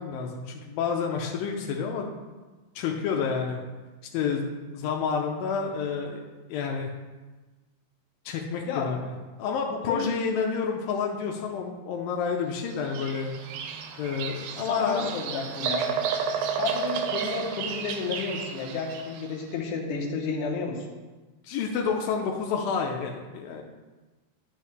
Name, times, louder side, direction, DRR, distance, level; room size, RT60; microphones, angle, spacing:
voice 1, 0.0-2.1 2.8-3.6 4.1-6.2 6.5-6.9 8.3-9.1 9.4-13.3 14.0-15.1 21.4-23.6, left 5 dB, 85° left, 1 dB, 2.4 m, -29 dB
voice 2, 8.7-9.0 9.7-10.1 14.7-15.9 16.5-20.8, left 5 dB, 70° left, 0 dB, 2.3 m, -31 dB
Bird vocalization bird call bird song, 12.7-19.3, right 7 dB, 85° right, 2.4 m, -32 dB
9.9 x 5.6 x 3.2 m, 1.2 s
omnidirectional pair, 4.1 m